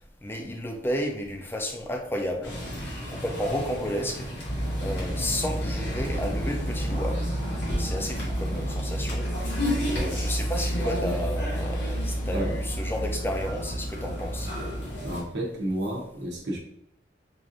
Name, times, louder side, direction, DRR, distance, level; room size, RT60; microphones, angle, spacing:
voice 1, 0.2-2.5 3.1-4.3 4.8-7.2 7.8-9.6 9.9-14.5, equal, 15° left, 3 dB, 0.4 m, -32 dB
sound 1, 2.4-15.2, equal, 90° left, 1.5 m, -30 dB
voice 2, 15.0-16.6, right 1 dB, 70° right, -2 dB, 0.8 m, -31 dB
4.7 x 2.6 x 2.5 m, 0.74 s
head